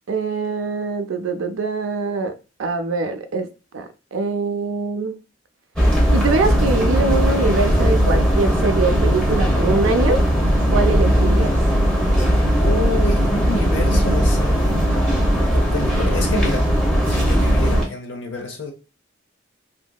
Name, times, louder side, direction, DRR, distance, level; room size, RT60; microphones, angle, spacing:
voice 1, 0.1-2.3 2.6-3.5 3.7-5.2 6.1-10.2 10.7-11.6, right 4 dB, 85° right, 0.4 m, -23 dB
sound 1, 5.8-17.8, equal, 5° left, 0.8 m, -18 dB
voice 2, 12.6-14.8 15.5-16.7 17.1-18.7, left 2 dB, 70° left, 0.7 m, -28 dB
2.8 x 2.6 x 2.3 m
head